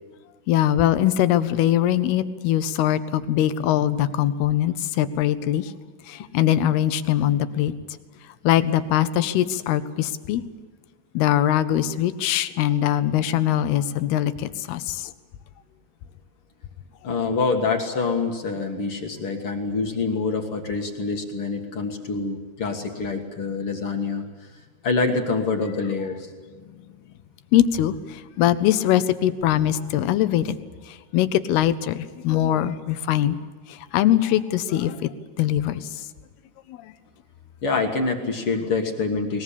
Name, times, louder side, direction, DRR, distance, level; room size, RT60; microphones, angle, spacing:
voice 1, 0.5-5.7 6.1-7.7 8.4-10.4 11.1-15.1 27.5-30.6 31.1-33.4 33.7-35.1 35.4-35.9 36.7-36.9, left 12 dB, 75° left, 13 dB, 2.8 m, -22 dB
voice 2, 17.0-24.2 24.8-26.3 37.6-39.4, left 4 dB, 50° left, 3 dB, 1.8 m, -26 dB
22.0 x 20.5 x 8.5 m, 1.4 s
omnidirectional pair, 4.8 m